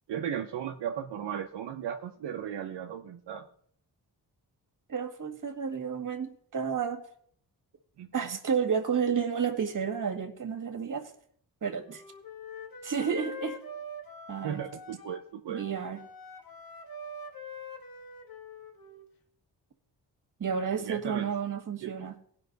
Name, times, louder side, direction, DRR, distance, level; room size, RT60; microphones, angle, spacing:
voice 1, 0.1-3.5 8.0-8.4 14.4-15.6 20.8-21.3 21.8-21.9, right 9 dB, 80° right, 3 dB, 0.8 m, -36 dB
voice 2, 4.9-7.0 8.1-11.1 11.6-12.0 12.8-13.6 14.3-14.6 15.5-16.0 20.4-22.2, right 6 dB, 50° right, 5 dB, 1.9 m, -31 dB
Wind instrument woodwind instrument, 11.8-15.2 15.5-19.1, left 2 dB, 60° left, 1.6 m, -44 dB
16.5 x 5.7 x 4.0 m, 0.63 s
cardioid pair, 60°, 41 cm